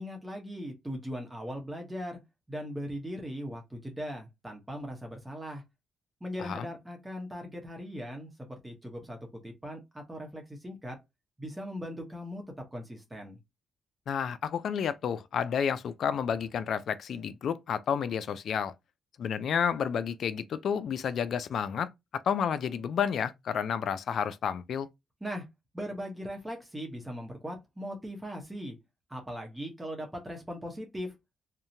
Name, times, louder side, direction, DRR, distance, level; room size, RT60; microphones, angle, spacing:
voice 1, 0.0-2.2 2.5-5.6 6.2-9.2 9.4-11.0 11.4-12.4 12.7-13.4 25.2-25.5 25.7-28.8 29.1-31.1, equal, 15° right, 0.9 m, -39 dB
voice 2, 14.1-18.7 19.2-21.9 22.3-24.9, left 7 dB, 70° left, 0.3 m, -30 dB
2.7 x 2.1 x 2.6 m
supercardioid pair, 65°, 0 cm